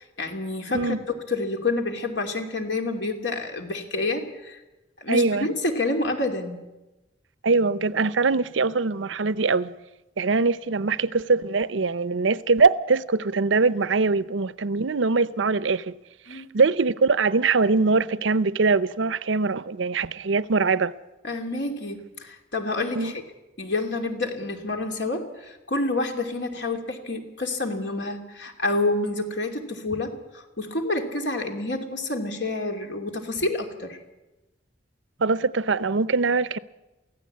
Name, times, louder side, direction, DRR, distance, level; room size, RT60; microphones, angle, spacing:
voice 1, 0.0-4.6 5.0-6.6 16.3-16.5 21.2-23.2 23.6-34.0, left 2 dB, 70° left, 2.8 m, -28 dB
voice 2, 5.1-5.5 7.4-9.7 10.2-16.0 16.3-20.9 22.9-23.1 35.2-36.6, right 4 dB, 85° right, 0.7 m, -22 dB
23.5 x 16.0 x 8.5 m
head